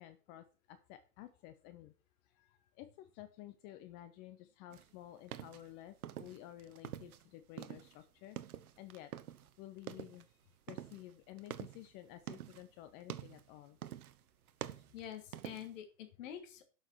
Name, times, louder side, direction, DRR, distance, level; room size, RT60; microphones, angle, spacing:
voice 1, 0.0-1.9 2.2-8.4 8.8-9.1 9.4-10.3 10.7-13.8 14.8-14.9, left 13 dB, 20° left, 10 dB, 0.5 m, -53 dB
sound 1, 4.7-7.2 7.5-9.5 9.8-10.3 10.7-12.7 13.0-13.5 13.8-14.2 14.5-15.8, right 11 dB, 60° right, 1.1 m, -47 dB
voice 2, 14.9-16.6, left 10 dB, 50° left, 6 dB, 2.8 m, -47 dB
12.0 x 6.4 x 4.5 m, 0.35 s
hypercardioid pair, 120°, 49 cm